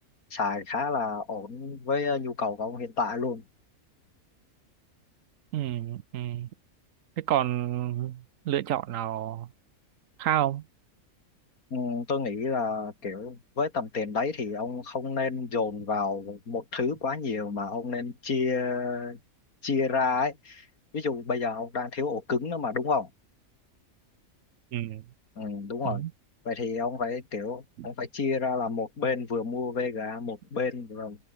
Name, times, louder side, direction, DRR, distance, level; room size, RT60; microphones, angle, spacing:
voice 1, 0.3-3.4 11.7-19.2 19.6-20.7 20.9-23.1 25.4-26.1 26.4-31.2, left 4 dB, 85° left, 3.1 m, -30 dB
voice 2, 5.5-6.5 7.2-9.5 10.2-10.6 24.7-25.0 25.8-26.1 27.8-27.9, right 12 dB, 70° right, 1.0 m, -29 dB
omnidirectional pair, 1.5 m